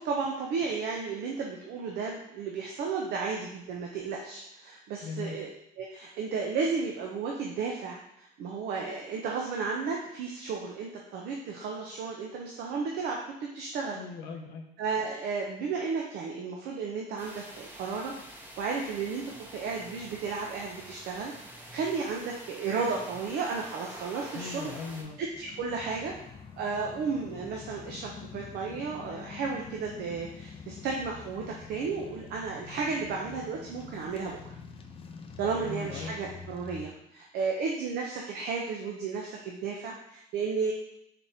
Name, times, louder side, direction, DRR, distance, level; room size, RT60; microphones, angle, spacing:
voice 1, 0.0-5.5 5.8-14.0 14.8-18.1 18.6-19.2 19.5-24.7 25.2-26.1 26.6-34.5 35.4-40.7, right 5 dB, 75° right, -1 dB, 0.6 m, -33 dB
voice 2, 5.0-5.4 13.9-14.6 24.3-25.2 35.6-36.2, left 5 dB, 90° left, 2 dB, 0.6 m, -38 dB
sound 1, 17.2-25.0, equal, 10° right, 0.7 m, -46 dB
sound 2, 24.7-36.9, left 6 dB, 35° left, 0.4 m, -46 dB
4.2 x 3.3 x 2.7 m, 0.78 s
cardioid pair, 110°, 17 cm